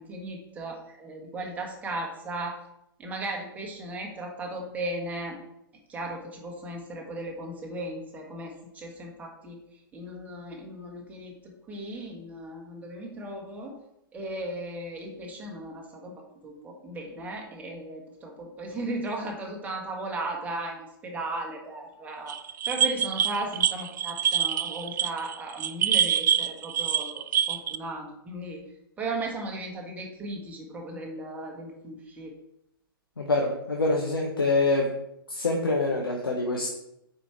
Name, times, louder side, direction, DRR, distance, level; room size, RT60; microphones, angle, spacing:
voice 1, 0.0-2.5 3.0-5.4 5.9-9.6 9.9-11.3 11.7-13.8 14.1-22.4 22.7-28.6 29.0-32.3, right 2 dB, 10° right, 0 dB, 1.5 m, -36 dB
sound 1, 22.3-27.8, right 9 dB, 55° right, 0.4 m, -25 dB
voice 2, 33.2-34.9 35.3-36.7, left 2 dB, 75° left, 0 dB, 1.0 m, -25 dB
8.6 x 4.8 x 3.1 m, 0.80 s
figure-of-eight pair, 110°, 12 cm